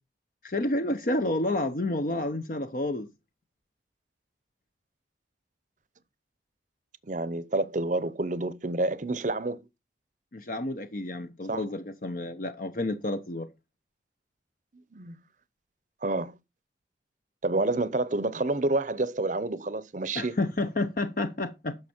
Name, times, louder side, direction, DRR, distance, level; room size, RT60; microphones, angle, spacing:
voice 1, 0.4-3.1 10.3-13.5 20.1-21.8, left 2 dB, 50° left, 0.7 m, -30 dB
voice 2, 7.1-9.6 11.5-11.6 14.9-15.2 16.0-16.4 17.4-20.3, right 2 dB, 45° right, 0.7 m, -28 dB
11.5 x 6.4 x 4.4 m
head